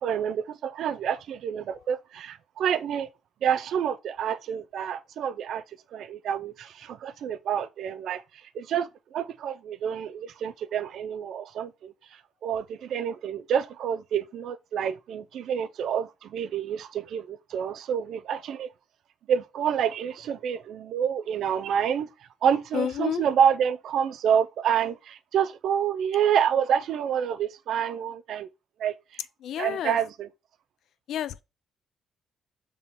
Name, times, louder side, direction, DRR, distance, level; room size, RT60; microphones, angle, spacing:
voice 1, 0.0-3.1 3.4-5.6 5.9-8.2 8.5-18.7 19.3-22.1 22.4-28.5 28.8-29.2 29.6-30.3, right 8 dB, 70° right, 0.4 m, -28 dB
voice 2, 22.7-23.2 29.4-30.0 31.1-31.4, left 9 dB, 75° left, 0.3 m, -30 dB
5.4 x 3.1 x 2.9 m
cardioid pair, 90°, 0 cm